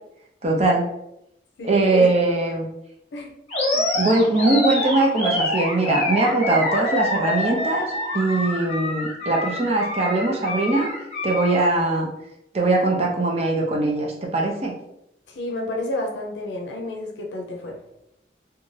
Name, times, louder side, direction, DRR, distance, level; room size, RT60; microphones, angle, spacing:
voice 1, 0.4-0.8 1.6-2.7 3.9-10.9 11.2-12.1 12.5-14.7, right 2 dB, 35° right, -1 dB, 0.5 m, -21 dB
voice 2, 1.6-2.1 3.1-3.3 3.7-3.8 15.3-17.8, left 1 dB, 80° left, 1 dB, 0.5 m, -30 dB
Animal, 3.5-11.7, left 1 dB, 40° left, 0.8 m, -26 dB
2.6 x 2.3 x 3.1 m, 0.83 s
head